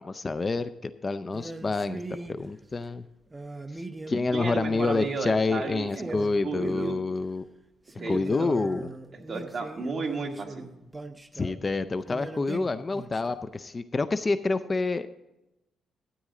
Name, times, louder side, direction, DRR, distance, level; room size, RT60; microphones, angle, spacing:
voice 1, 0.0-2.0 2.3-3.0 4.1-7.4 8.1-8.9 11.3-15.1, left 3 dB, 30° left, 12 dB, 0.4 m, -28 dB
sound 1, 1.3-2.4 3.3-4.4 4.8-5.4 5.6-5.7 5.9-7.2 7.9-11.6 12.1-13.4, right 2 dB, 15° right, 0.7 m, -40 dB
voice 2, 4.3-6.2 6.4-7.0 8.0-8.5 9.1-10.7, right 4 dB, 40° right, 2 dB, 1.8 m, -33 dB
13.0 x 9.2 x 3.7 m, 0.96 s
cardioid pair, 105°, 0 cm